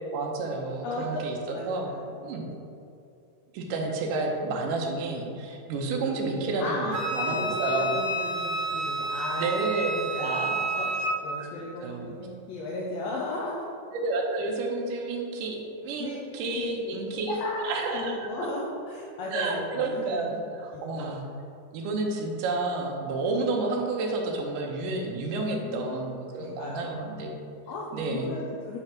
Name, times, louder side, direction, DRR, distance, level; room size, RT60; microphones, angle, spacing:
voice 1, 0.1-2.0 2.2-2.5 3.5-8.0 9.4-9.9 10.2-10.6 11.4-11.5 11.8-12.1 13.9-18.3 19.3-21.3 21.7-27.5 27.9-28.3, right 3 dB, 85° right, 1 dB, 2.5 m, -30 dB
voice 2, 0.8-1.2 1.5-2.1 6.6-10.3 10.6-13.7 16.0-16.2 16.5-16.7 17.3-20.3 20.7-21.1 25.3-26.1 26.4-27.0 27.7-28.8, left 2 dB, 75° left, -3 dB, 1.6 m, -36 dB
Wind instrument woodwind instrument, 6.9-11.2, right 2 dB, 70° right, 1.4 m, -30 dB
8.6 x 3.3 x 5.8 m, 2.5 s
omnidirectional pair, 3.6 m